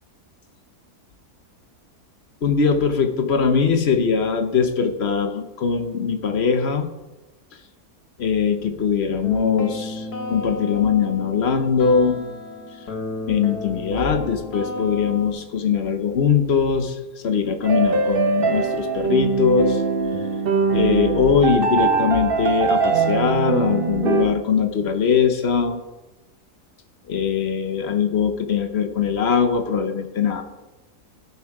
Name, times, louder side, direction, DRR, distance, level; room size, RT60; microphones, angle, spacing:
voice 1, 2.4-6.9 8.2-12.3 13.3-17.0 17.2-19.8 20.7-25.8 27.1-30.4, left 6 dB, 50° left, 7 dB, 0.9 m, -21 dB
sound 1, 9.2-15.3, left 2 dB, 70° left, 2.0 m, -33 dB
sound 2, 17.6-24.2, right 5 dB, 45° right, 0.9 m, -22 dB
13.0 x 5.6 x 4.8 m, 1.0 s
omnidirectional pair, 1.7 m